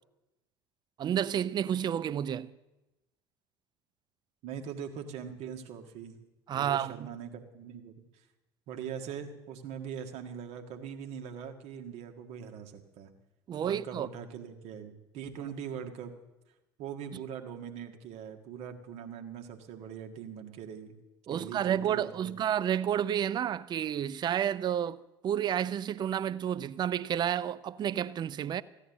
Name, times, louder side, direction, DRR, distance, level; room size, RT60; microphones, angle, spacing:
voice 1, 1.0-2.5 6.5-7.1 13.5-14.1 21.3-28.6, right 9 dB, 30° right, 0.5 m, -30 dB
voice 2, 4.4-6.2 6.5-7.9 8.7-13.1 13.6-16.1 16.8-21.0 21.3-22.3, right 8 dB, 50° right, 1.7 m, -42 dB
15.5 x 9.9 x 7.1 m
figure-of-eight pair, 65°, 13 cm